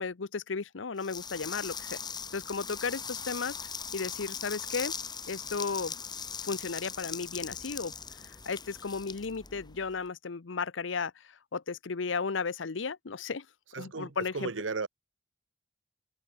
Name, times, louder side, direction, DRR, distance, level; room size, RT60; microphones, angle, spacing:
voice 1, 0.0-2.0 2.3-3.6 3.9-4.9 5.3-6.0 6.4-7.9 8.5-11.2 11.5-13.5 13.8-14.5, left 5 dB, 90° left, 0.8 m, -34 dB
sound 1, 1.0-10.0, left 6 dB, 25° left, 2.5 m, -40 dB
voice 2, 13.7-14.9, right 4 dB, 90° right, 1.0 m, -35 dB
head